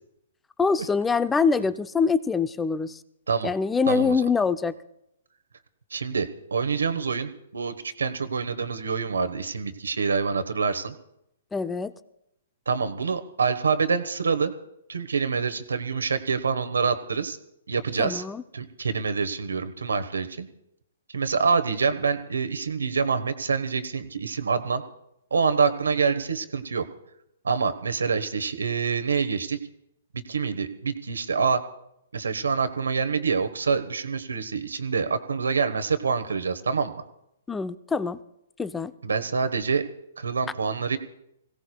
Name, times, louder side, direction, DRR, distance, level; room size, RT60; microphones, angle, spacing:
voice 1, 0.6-3.0 3.4-4.8 11.5-11.9 18.0-18.4 37.5-38.2 38.6-38.9, left 5 dB, 10° left, 13 dB, 0.6 m, -24 dB
voice 2, 3.9-4.2 5.9-10.9 12.7-14.5 14.9-17.4 17.7-18.2 18.5-20.5 21.1-24.8 25.3-26.8 27.4-29.6 30.1-31.6 32.1-37.0 39.0-39.8 40.2-41.0, right 5 dB, 85° right, 9 dB, 1.2 m, -26 dB
26.0 x 17.0 x 2.3 m, 0.81 s
hypercardioid pair, 130°, 0 cm